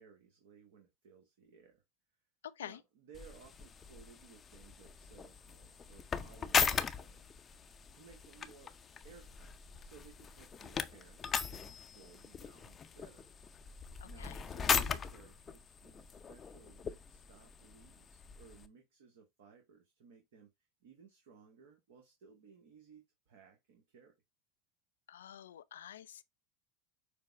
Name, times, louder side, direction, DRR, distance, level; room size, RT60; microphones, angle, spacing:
voice 1, 0.0-1.8 2.6-7.3 7.9-8.8 9.0-13.3 14.0-20.5 20.8-24.1, right 6 dB, 70° right, 1.3 m, -60 dB
voice 2, 2.4-2.8 14.0-14.4 25.1-26.2, left 10 dB, 85° left, 0.4 m, -48 dB
sound 1, 3.1-18.7, left 6 dB, 30° left, 0.5 m, -39 dB
6.7 x 2.2 x 3.4 m
hypercardioid pair, 100°, 0 cm